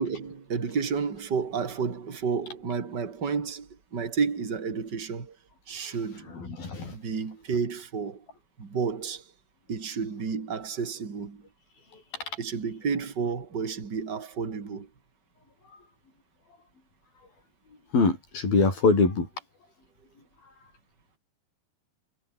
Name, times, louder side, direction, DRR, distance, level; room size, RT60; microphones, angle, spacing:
voice 1, 0.0-5.4 5.7-6.3 6.9-8.2 8.6-9.2 9.7-11.4 12.4-14.9, right 5 dB, 30° right, 3.4 m, -31 dB
voice 2, 6.3-7.0 17.9-19.3, left 4 dB, 75° left, 9.6 m, -23 dB
omnidirectional pair, 4.2 m